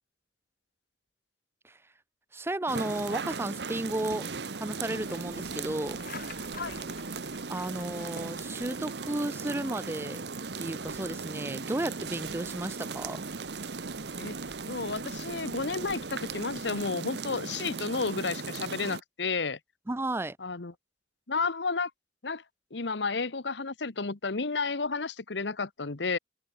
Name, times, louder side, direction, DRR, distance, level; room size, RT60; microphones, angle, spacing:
voice 1, 2.3-6.0 7.5-10.2 10.6-13.2 19.9-20.4, right 1 dB, 15° right, 0.6 m, -33 dB
sound 1, 2.7-19.0, right 4 dB, 70° right, 1.1 m, -37 dB
sound 2, 4.9-16.9, left 4 dB, 55° left, 6.5 m, -53 dB
voice 2, 14.7-19.6 20.4-20.7 21.3-21.9 22.2-22.4 22.7-26.2, left 4 dB, 85° left, 1.2 m, -32 dB
head